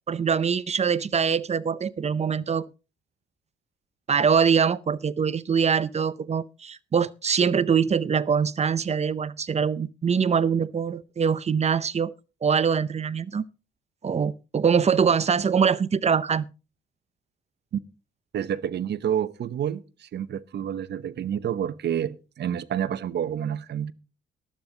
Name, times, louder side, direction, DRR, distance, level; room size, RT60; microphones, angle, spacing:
voice 1, 0.1-2.6 4.1-12.1 12.4-13.4 14.0-16.5, right 6 dB, 35° right, 0.6 m, -23 dB
voice 2, 18.3-23.9, right 9 dB, 60° right, 0.9 m, -29 dB
12.5 x 12.0 x 3.9 m
cardioid pair, 90°, 20 cm